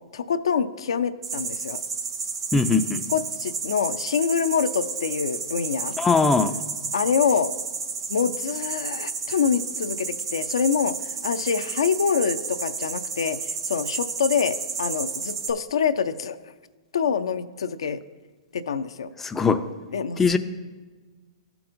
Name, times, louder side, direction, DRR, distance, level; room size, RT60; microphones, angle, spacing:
voice 1, 0.1-1.8 3.1-5.9 6.9-7.5 8.1-10.9 11.2-16.4 16.9-18.0 18.5-19.1 19.9-20.4, left 6 dB, 75° left, 9 dB, 0.5 m, -25 dB
sound 1, 1.2-15.5, right 5 dB, 80° right, 1.5 m, -32 dB
voice 2, 2.5-3.0 6.0-6.6 19.2-19.6 20.2-20.4, left 4 dB, 10° left, 7 dB, 0.4 m, -20 dB
15.0 x 5.9 x 2.6 m, 1.4 s
hypercardioid pair, 120°, 3 cm